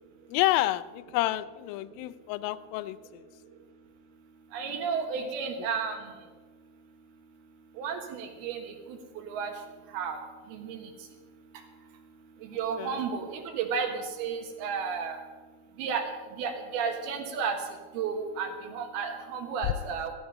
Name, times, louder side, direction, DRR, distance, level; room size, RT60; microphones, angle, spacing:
voice 1, 0.3-3.3 5.2-5.3 12.8-13.0 19.6-19.7, left 16 dB, 80° left, 13 dB, 2.3 m, -29 dB
voice 2, 4.5-6.0 7.8-8.7 9.3-9.5 9.9-10.2 10.5-10.8 12.5-15.2 15.8-16.0 16.4-17.6 17.9-20.1, right 6 dB, 90° right, 4 dB, 3.4 m, -32 dB
15.5 x 13.0 x 5.5 m, 1.4 s
omnidirectional pair, 4.3 m